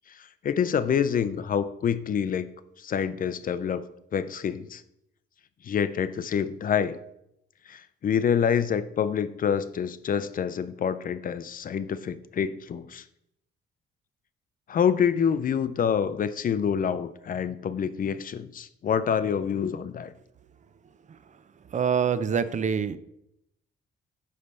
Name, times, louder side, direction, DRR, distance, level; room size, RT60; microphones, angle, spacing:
voice 1, 0.1-2.5 2.8-3.8 4.1-4.8 5.6-7.0 7.7-13.0 14.7-20.1, left 7 dB, 45° left, 14 dB, 0.5 m, -27 dB
voice 2, 21.7-23.0, right 7 dB, 40° right, 13 dB, 0.5 m, -25 dB
9.6 x 3.3 x 5.3 m, 0.80 s
cardioid pair, 90°, 20 cm